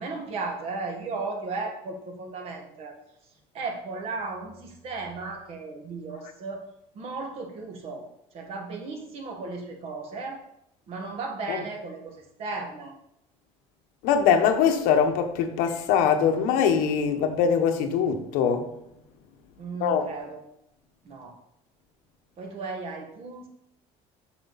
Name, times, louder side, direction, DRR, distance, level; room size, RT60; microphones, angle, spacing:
voice 1, 0.0-2.9 3.5-6.6 6.9-8.1 8.3-10.4 10.9-12.9 19.6-20.4 21.0-21.3 22.4-23.5, right 3 dB, 45° right, 1.7 m, -35 dB
voice 2, 14.0-18.7 19.8-20.0, left 7 dB, 80° left, 1.1 m, -22 dB
7.6 x 6.7 x 4.1 m
cardioid pair, 165°, 14 cm